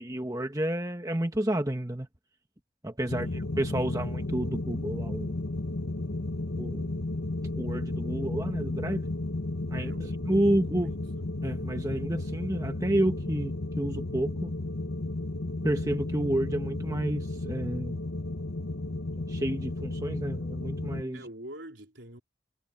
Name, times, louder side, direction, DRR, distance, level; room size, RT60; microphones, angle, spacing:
voice 1, 0.0-2.1 2.8-3.3 3.6-5.4 6.6-7.0 7.5-9.1 9.7-10.9 11.4-14.5 15.6-18.0 19.2-21.2, right 1 dB, 15° right, 1.5 m, -30 dB
sound 1, 3.1-21.0, left 2 dB, 80° left, 1.3 m, -33 dB
voice 2, 3.1-3.4 9.8-11.2 21.1-22.2, right 1 dB, 65° right, 4.4 m, -47 dB
head